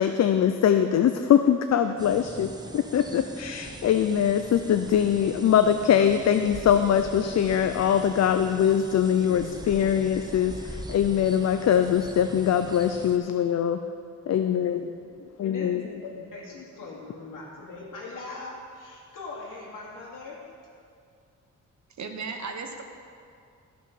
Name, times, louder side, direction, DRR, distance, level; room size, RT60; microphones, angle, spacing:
voice 1, 0.0-13.8 14.3-14.8 15.4-15.8, left 9 dB, 55° left, 8 dB, 0.5 m, -22 dB
sound 1, 2.0-13.2, right 2 dB, 15° right, 0.6 m, -42 dB
voice 2, 9.1-11.0 14.3-20.4, left 3 dB, 80° left, -3 dB, 2.5 m, -42 dB
voice 3, 22.0-22.8, right 4 dB, 60° right, 5 dB, 1.1 m, -35 dB
13.5 x 6.0 x 5.9 m, 2.3 s
wide cardioid pair, 130°, 32 cm